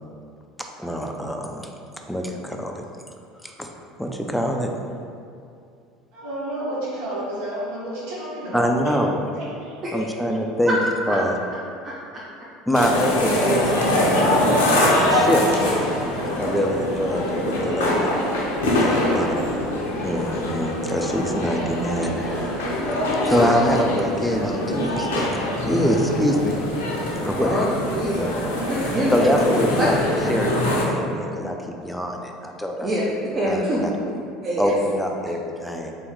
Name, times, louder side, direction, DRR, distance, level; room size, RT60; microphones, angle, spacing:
voice 1, 0.6-1.7 2.1-2.8 3.4-3.7 4.0-4.7 8.5-9.2 9.9-10.8 11.1-11.4 12.7-15.5 16.4-18.1 18.8-19.3 20.0-22.6 23.2-25.3 25.7-26.6 27.2-27.7 28.2-28.3 29.1-30.0 30.3-32.9 33.5-33.9 34.6-36.0, equal, 5° left, 2 dB, 0.5 m, -24 dB
voice 2, 6.1-8.7 9.3-10.1, right 1 dB, 65° right, -8 dB, 1.4 m, -31 dB
voice 3, 11.8-12.2 18.9-19.2 27.3-27.7 27.9-28.3 28.7-29.2 29.8-29.9 32.8-33.0 33.3-34.7, equal, 30° right, -5 dB, 0.7 m, -26 dB
sound 1, 12.7-30.8, left 1 dB, 70° left, 0.6 m, -23 dB
4.2 x 3.0 x 3.7 m, 2.4 s
figure-of-eight pair, 70°, 0 cm